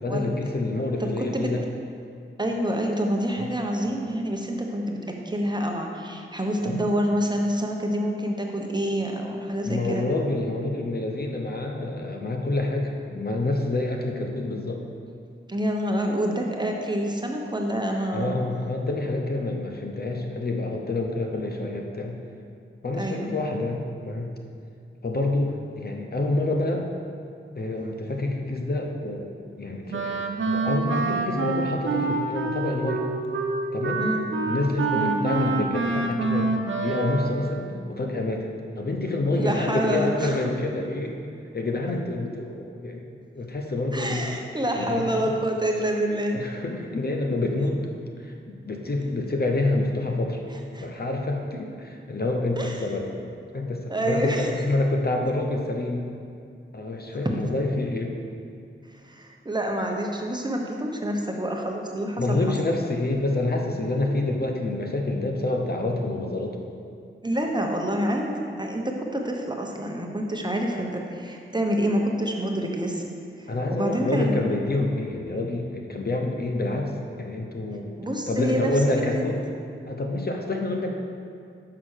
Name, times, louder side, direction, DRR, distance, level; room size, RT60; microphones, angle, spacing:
voice 1, 0.0-1.6 3.4-3.5 6.6-6.8 9.6-14.8 18.1-22.2 22.8-24.3 25.0-26.9 27.5-33.1 33.7-34.1 34.5-36.5 36.8-38.5 38.8-41.2 41.5-43.1 43.3-44.3 44.7-45.3 46.3-47.8 48.2-50.4 50.8-53.1 53.5-56.0 56.7-58.2 62.2-66.6 73.5-77.9 78.3-79.4 79.9-80.9, left 2 dB, 50° left, 2 dB, 0.8 m, -27 dB
voice 2, 1.0-1.5 2.4-10.1 15.5-18.4 23.0-23.3 34.0-34.3 35.0-35.1 39.3-40.4 43.9-46.4 50.5-50.9 52.6-52.9 53.9-54.5 57.2-57.3 59.0-62.4 67.2-73.0 73.4-74.5 78.0-78.7 79.1-79.2, right 1 dB, 20° right, 1 dB, 1.0 m, -27 dB
Wind instrument woodwind instrument, 29.9-37.4, right 3 dB, 65° right, 0.7 m, -27 dB
5.9 x 5.8 x 6.5 m, 2.3 s
wide cardioid pair, 65°, 21 cm